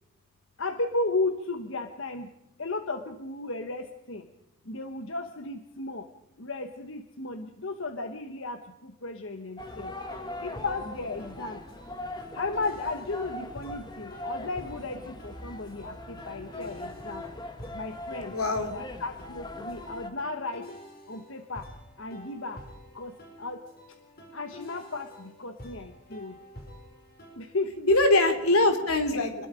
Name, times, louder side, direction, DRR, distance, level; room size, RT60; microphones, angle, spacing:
voice 1, 0.6-2.3 2.6-4.3 4.6-6.1 6.4-9.9 10.4-11.6 12.3-17.3 17.7-18.4 18.7-20.7 21.1-21.7 22.0-22.6 22.9-23.6 24.3-26.4 27.3-27.9 29.1-29.2, left 3 dB, 60° left, 7 dB, 1.2 m, -34 dB
sound 1, 9.6-20.1, left 1 dB, 20° left, 1.5 m, -41 dB
sound 2, 9.7-27.4, left 1 dB, 45° left, 5.6 m, -48 dB
voice 2, 18.3-18.7 27.9-29.5, left 2 dB, 85° left, 7 dB, 3.3 m, -22 dB
27.0 x 21.0 x 5.1 m, 0.89 s
head